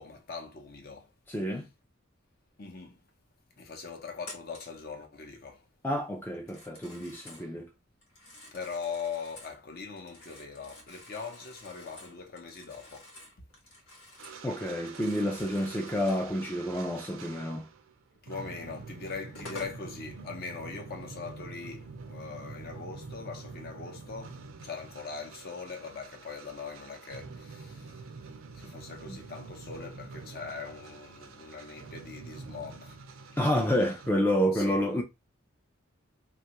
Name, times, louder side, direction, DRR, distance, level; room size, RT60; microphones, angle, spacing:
voice 1, 0.0-1.1 2.6-3.0 3.6-5.7 7.1-7.4 8.5-13.1 18.2-28.1 28.5-33.0 34.5-35.0, left 5 dB, 50° left, 0.7 m, -41 dB
voice 2, 1.3-1.7 5.8-7.7 14.4-17.6 29.1-29.2 33.4-35.0, equal, 10° left, 0.3 m, -29 dB
Telephone, 4.2-4.8 6.3-7.5 8.0-9.6 10.0-14.5 14.7-16.3 18.4-18.5 19.1-19.8, left 1 dB, 85° left, 1.1 m, -50 dB
sound 1, 14.2-17.9 18.3-34.1, right 4 dB, 80° right, 0.5 m, -46 dB
3.0 x 2.3 x 2.8 m
head